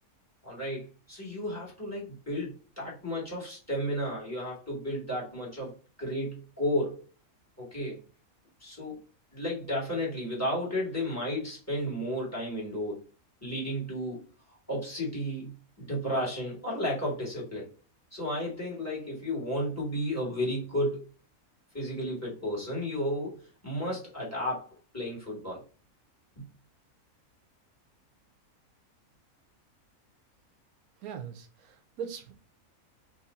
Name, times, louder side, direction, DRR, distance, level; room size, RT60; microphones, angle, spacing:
voice 1, 0.4-7.0 7.6-8.0 8.6-9.0 9.3-13.0 13.4-14.2 14.7-15.5 15.8-17.7 18.1-21.0 21.7-25.6 26.4-26.5, equal, 10° left, -4 dB, 1.5 m, -33 dB
voice 2, 31.0-32.3, right 7 dB, 85° right, 5 dB, 1.1 m, -40 dB
3.1 x 2.5 x 4.0 m, 0.35 s
omnidirectional pair, 1.5 m